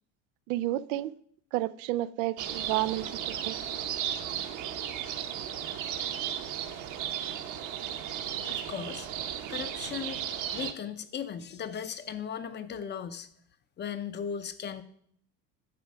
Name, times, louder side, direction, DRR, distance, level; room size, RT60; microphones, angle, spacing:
voice 1, 0.5-1.1 1.5-3.1 3.4-3.8, right 16 dB, 85° right, 0.5 m, -31 dB
sound 1, 2.4-10.7, right 10 dB, 50° right, 0.9 m, -35 dB
voice 2, 8.5-9.1 9.5-10.3 10.5-13.3 13.8-14.8, left 8 dB, 30° left, 0.6 m, -37 dB
9.5 x 6.2 x 4.8 m
supercardioid pair, 125°, 38 cm